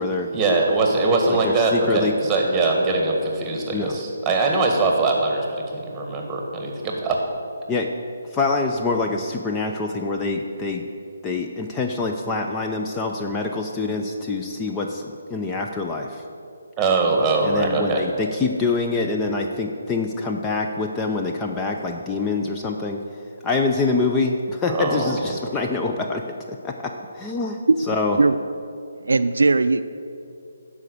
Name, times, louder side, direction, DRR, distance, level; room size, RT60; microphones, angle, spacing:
voice 1, 0.3-7.2 16.8-18.0 24.7-25.3, right 3 dB, 10° right, 1 dB, 1.6 m, -22 dB
voice 2, 1.3-2.1 3.7-4.0 7.7-7.9 8.2-10.8 11.2-16.2 17.4-23.0 23.4-27.6 27.9-28.2, left 3 dB, 15° left, 2 dB, 0.5 m, -25 dB
voice 3, 29.0-29.8, right 3 dB, 75° right, 11 dB, 0.4 m, -18 dB
12.0 x 5.1 x 6.6 m, 2.6 s
figure-of-eight pair, 150°, 0 cm